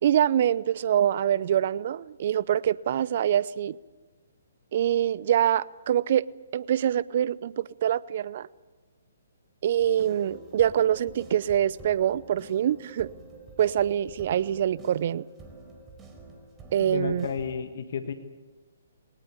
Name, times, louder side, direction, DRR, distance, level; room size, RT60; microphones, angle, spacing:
voice 1, 0.0-3.8 4.7-6.3 6.5-8.5 9.6-13.1 13.6-15.3 16.7-17.3, right 10 dB, 50° right, 21 dB, 0.6 m, -25 dB
sound 1, 9.8-17.6, right 3 dB, 15° right, 4.1 m, -47 dB
voice 2, 16.8-18.1, left 6 dB, 60° left, 7 dB, 1.6 m, -32 dB
21.0 x 19.0 x 8.5 m, 1.3 s
figure-of-eight pair, 135°, 0 cm